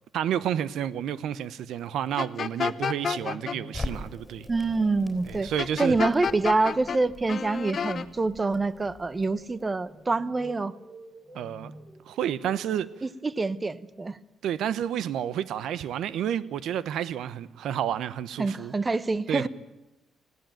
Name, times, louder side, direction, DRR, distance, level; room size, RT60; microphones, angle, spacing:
voice 1, 0.1-4.5 5.2-6.0 11.3-11.7 12.1-12.9 14.4-18.7 19.3-19.5, right 10 dB, 80° right, 0.8 m, -30 dB
sound 1, 2.1-13.4, equal, 10° right, 4.6 m, -50 dB
sound 2, 2.2-3.6 5.6-7.0 7.3-8.1, left 6 dB, 50° left, 0.8 m, -30 dB
Crackle, 3.7-9.9, left 2 dB, 15° left, 4.2 m, -42 dB
voice 2, 4.5-5.5 5.8-10.7 13.0-14.2 18.4-19.5, right 3 dB, 25° right, 0.9 m, -26 dB
19.5 x 15.5 x 9.0 m
cardioid pair, 90°, 0 cm